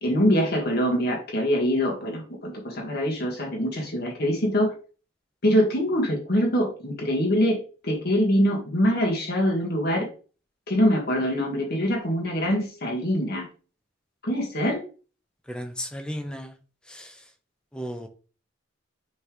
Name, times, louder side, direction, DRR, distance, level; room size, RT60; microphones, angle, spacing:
voice 1, 0.0-4.7 5.4-7.6 7.8-10.1 10.7-13.5 14.2-14.8, equal, 50° left, 1.6 m, -24 dB
voice 2, 15.5-16.5 16.9-17.1 17.7-18.1, equal, 5° left, 0.7 m, -34 dB
9.3 x 3.8 x 3.1 m
head